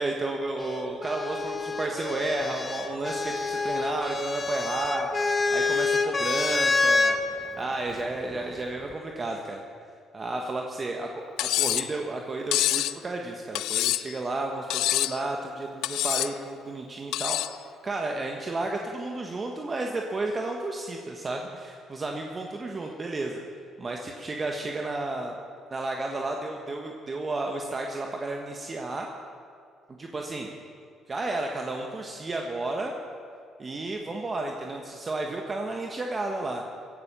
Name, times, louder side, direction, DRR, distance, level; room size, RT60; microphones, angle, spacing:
voice 1, 0.0-9.6 10.1-11.1 11.4-23.4 23.8-25.3 25.7-29.1 30.0-30.5 31.1-32.9 33.6-36.6, right 2 dB, 35° right, 2 dB, 1.5 m, -32 dB
sound 1, 0.6-7.2 8.3-8.9, left 3 dB, 30° left, 1.3 m, -27 dB
Cutlery silverware, 11.4-11.9 12.5-13.0 13.6-14.2 14.7-15.2 15.8-16.3 17.1-17.6, left 15 dB, 80° left, 0.4 m, -26 dB
16.5 x 10.5 x 6.9 m, 2.4 s
supercardioid pair, 70°, 0 cm